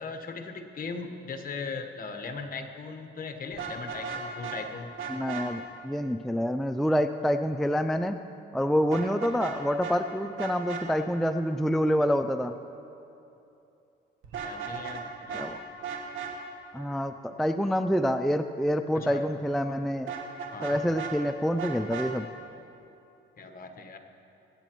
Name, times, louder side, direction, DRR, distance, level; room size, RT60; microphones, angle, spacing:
voice 1, 0.0-4.9 14.4-15.5 18.9-19.3 20.5-20.8 23.4-24.0, left 4 dB, 45° left, 5 dB, 1.2 m, -38 dB
Vehicle horn car horn honking, 3.5-4.6 5.0-5.5 8.9-9.6 9.8-9.9 10.4-10.8 14.2-15.0 15.3-15.5 15.8-16.3 20.1-21.1 21.6-22.1, right 7 dB, 90° right, 1.4 m, -35 dB
voice 2, 5.1-8.2 8.5-12.5 15.3-15.6 16.7-20.1 20.6-22.3, equal, ahead, 8 dB, 0.3 m, -27 dB
24.0 x 8.8 x 3.0 m, 2.8 s
cardioid pair, 90°, 20 cm